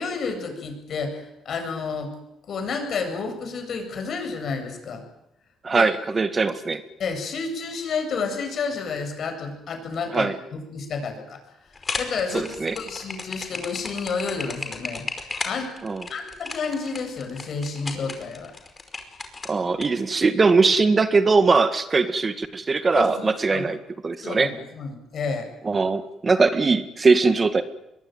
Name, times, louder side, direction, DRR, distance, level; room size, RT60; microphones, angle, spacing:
voice 1, 0.0-2.1 2.5-5.0 5.7-5.9 7.0-11.4 12.0-15.7 16.1-18.5 22.9-23.8 24.2-25.5, left 4 dB, 60° left, 6 dB, 7.9 m, -30 dB
voice 2, 5.6-6.8 10.1-10.4 12.3-12.8 15.8-16.0 19.5-23.8 24.0-24.5 25.7-27.6, right 4 dB, 35° right, 10 dB, 2.0 m, -21 dB
sound 1, 11.7-19.9, left 3 dB, 30° left, 5.1 m, -34 dB
23.5 x 22.5 x 9.3 m, 0.83 s
cardioid pair, 90°, 0 cm